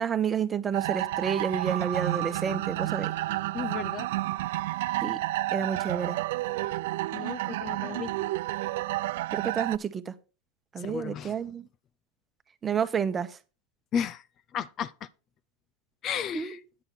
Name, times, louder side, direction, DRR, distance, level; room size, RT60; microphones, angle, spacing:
voice 1, 0.0-3.1 5.0-5.2 5.5-6.2 9.3-10.1 10.7-11.7 12.6-13.4 16.3-16.6, right 7 dB, 25° right, 1.1 m, -30 dB
sound 1, 0.7-9.8, right 17 dB, 70° right, 0.4 m, -30 dB
voice 2, 3.5-4.1 7.1-8.1 10.8-11.3 13.9-14.2 14.5-15.1 16.0-16.6, left 8 dB, 40° left, 0.6 m, -33 dB
9.7 x 6.8 x 5.7 m
hypercardioid pair, 100°, 0 cm